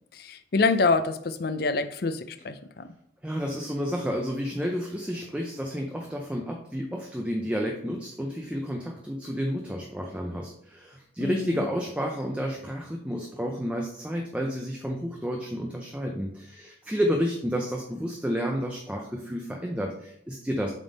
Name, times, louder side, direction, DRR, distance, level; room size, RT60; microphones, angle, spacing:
voice 1, 0.1-2.8 11.2-11.6, left 4 dB, 55° left, 10 dB, 0.5 m, -26 dB
voice 2, 3.2-20.7, equal, 5° right, 1 dB, 0.5 m, -31 dB
7.2 x 3.5 x 4.1 m, 0.70 s
head